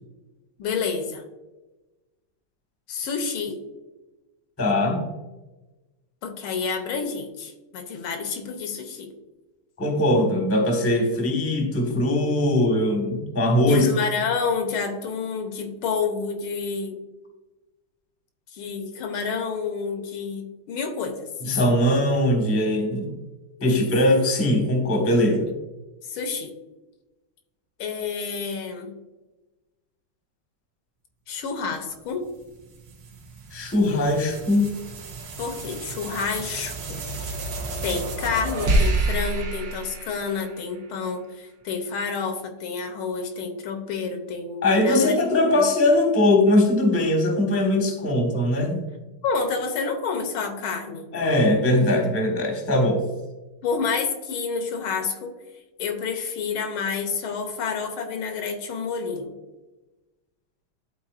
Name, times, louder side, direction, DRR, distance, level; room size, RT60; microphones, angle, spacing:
voice 1, 0.6-1.2 2.9-3.6 6.2-9.1 13.6-17.0 18.5-21.3 23.6-23.9 26.1-26.5 27.8-29.0 31.3-32.2 35.4-36.8 37.8-45.2 45.5-45.7 49.2-51.1 53.6-55.3 55.8-59.4, left 5 dB, 75° left, 5 dB, 1.7 m, -29 dB
voice 2, 4.6-5.1 9.8-13.9 21.4-23.1 23.6-25.5 33.5-34.7 44.6-48.9 51.1-53.0, left 1 dB, 10° left, 1 dB, 0.8 m, -21 dB
sound 1, 32.2-40.8, right 2 dB, 75° right, 1.9 m, -29 dB
12.0 x 4.1 x 2.5 m, 1.1 s
omnidirectional pair, 2.4 m